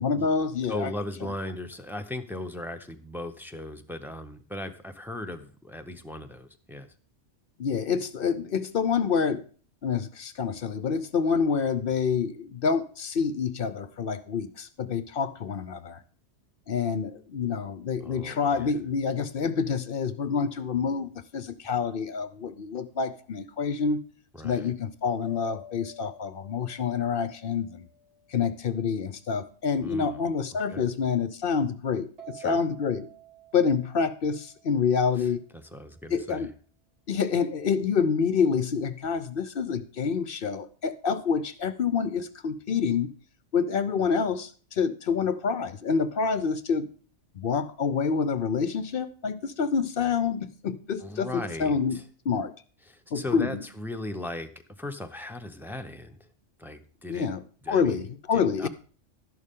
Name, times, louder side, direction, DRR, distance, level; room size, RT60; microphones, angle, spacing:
voice 1, 0.0-0.9 7.6-9.4 9.8-16.0 16.7-24.0 24.4-27.9 28.3-33.1 33.5-35.4 36.1-36.5 37.1-43.1 43.5-46.9 47.3-52.5 53.1-53.6 57.1-57.4 57.7-58.7, left 6 dB, 55° left, 14 dB, 0.7 m, -27 dB
voice 2, 0.7-6.9 18.0-18.8 24.3-24.7 29.8-30.3 30.7-30.9 32.4-32.6 35.2-35.3 35.5-36.5 51.0-52.0 52.9-54.5 54.8-56.3 56.6-57.3 57.6-58.0 58.3-58.7, left 1 dB, ahead, 6 dB, 0.7 m, -38 dB
sound 1, 25.2-28.7 32.2-35.2, equal, 65° right, 5.0 m, -50 dB
12.0 x 11.0 x 3.7 m, 0.42 s
omnidirectional pair, 1.3 m